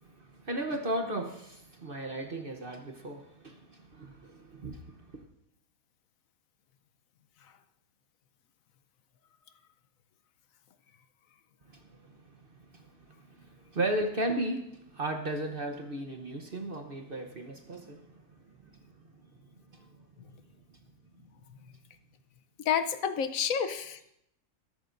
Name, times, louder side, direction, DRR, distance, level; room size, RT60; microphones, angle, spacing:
voice 1, 0.0-5.2 11.7-12.2 12.6-18.8 19.7-20.0, right 1 dB, 40° right, 4 dB, 1.1 m, -36 dB
voice 2, 22.7-24.1, left 8 dB, 65° left, 9 dB, 1.1 m, -29 dB
21.5 x 11.0 x 2.6 m, 0.78 s
omnidirectional pair, 1.7 m